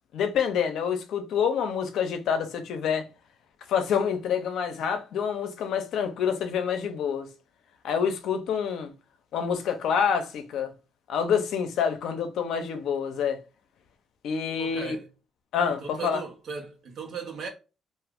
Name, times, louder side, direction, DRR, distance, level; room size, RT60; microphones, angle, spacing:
voice 1, 0.1-3.1 3.7-7.3 7.8-8.9 9.3-10.7 11.1-13.4 14.2-15.0 15.5-16.2, left 7 dB, 80° left, 0.6 m, -27 dB
voice 2, 14.6-15.1 15.8-17.5, right 6 dB, 65° right, 1.0 m, -37 dB
2.6 x 2.4 x 3.5 m
cardioid pair, 90°, 0 cm